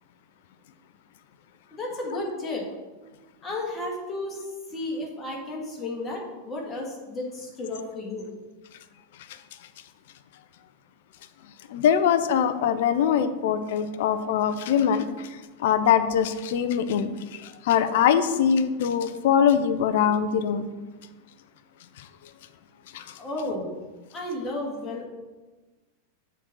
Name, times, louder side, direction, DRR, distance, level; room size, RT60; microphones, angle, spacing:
voice 1, 1.7-2.7 3.4-8.3 23.2-23.7 24.1-25.1, left 2 dB, 20° left, -2 dB, 2.1 m, -33 dB
voice 2, 11.7-20.6 22.0-22.1 22.9-23.2, left 8 dB, 55° left, 11 dB, 0.5 m, -23 dB
7.1 x 4.0 x 6.1 m, 1.2 s
figure-of-eight pair, 90°, 0 cm